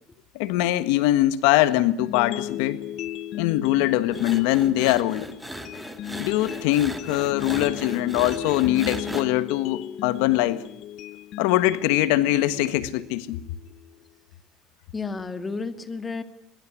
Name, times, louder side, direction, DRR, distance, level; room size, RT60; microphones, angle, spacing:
voice 1, 0.3-2.8 3.3-5.3 6.2-10.6 11.4-13.4, left 15 dB, 85° left, 1.4 m, -22 dB
sound 1, 2.0-14.0, left 12 dB, 55° left, 1.2 m, -36 dB
sound 2, 4.1-9.2, right 1 dB, 5° right, 2.7 m, -37 dB
voice 2, 14.9-16.2, left 4 dB, 20° left, 2.3 m, -32 dB
23.5 x 22.5 x 9.8 m
cardioid pair, 125°, 0 cm